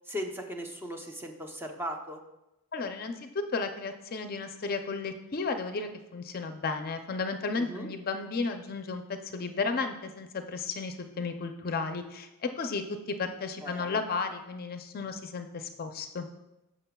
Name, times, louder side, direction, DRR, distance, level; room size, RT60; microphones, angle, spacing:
voice 1, 0.1-2.2 7.6-7.9 13.6-14.0, equal, 10° right, 3 dB, 0.7 m, -38 dB
voice 2, 2.7-16.3, left 4 dB, 45° left, 7 dB, 0.5 m, -34 dB
13.5 x 6.0 x 2.3 m, 0.94 s
head